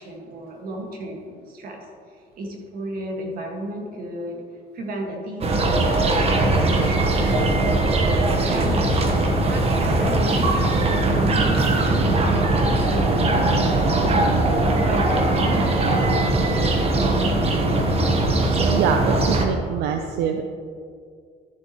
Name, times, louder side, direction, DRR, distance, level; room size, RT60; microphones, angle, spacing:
voice 1, 0.0-1.8 2.4-4.4 4.7-9.0 9.2-14.2 14.8-17.3, right 1 dB, 60° right, 0 dB, 1.9 m, -34 dB
sound 1, 5.4-19.5, right 2 dB, 35° right, 1.2 m, -20 dB
voice 2, 18.7-20.4, right 8 dB, 80° right, 5 dB, 0.6 m, -24 dB
12.5 x 7.2 x 3.1 m, 2.2 s
cardioid pair, 110°, 17 cm